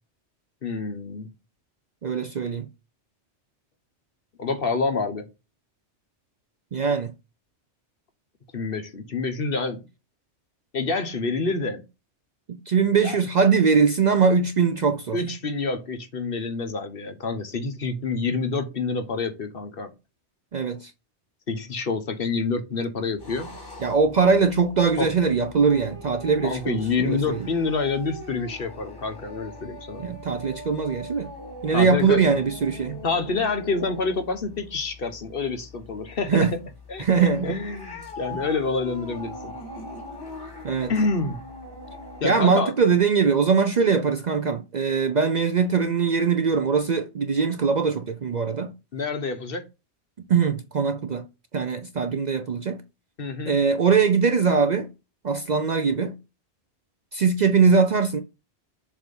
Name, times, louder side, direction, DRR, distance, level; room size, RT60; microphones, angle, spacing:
voice 1, 0.6-1.3 4.4-5.3 8.5-9.8 10.7-11.8 13.0-13.2 15.1-19.9 21.5-23.5 25.0-25.1 26.4-30.0 31.7-32.3 33.0-36.5 36.9-37.0 37.4-39.5 40.9-41.4 42.2-42.7 48.9-49.6 53.2-53.5, left 4 dB, 55° left, 1.2 m, -27 dB
voice 2, 2.0-2.7 6.7-7.1 12.5-15.2 20.5-20.9 23.8-27.5 30.0-31.3 31.6-33.0 36.3-36.6 37.0-37.6 40.6-40.9 42.2-48.7 50.3-51.3 51.5-52.8 53.5-54.9 55.2-56.2 57.1-58.2, right 5 dB, 50° right, 0.6 m, -21 dB
sound 1, 23.2-42.2, left 1 dB, 20° left, 2.1 m, -41 dB
7.3 x 2.7 x 5.4 m
omnidirectional pair, 1.2 m